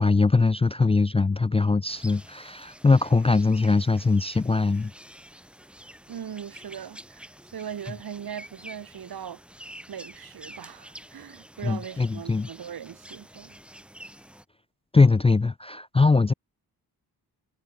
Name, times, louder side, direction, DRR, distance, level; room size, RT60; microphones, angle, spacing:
voice 1, 0.0-4.9 11.6-12.5 14.9-16.3, left 3 dB, 15° left, 0.4 m, -21 dB
sound 1, 1.9-14.4, equal, 5° right, 6.4 m, -48 dB
voice 2, 6.1-9.4 9.9-13.6, right 8 dB, 65° right, 3.8 m, -39 dB
wide cardioid pair, 165°, 39 cm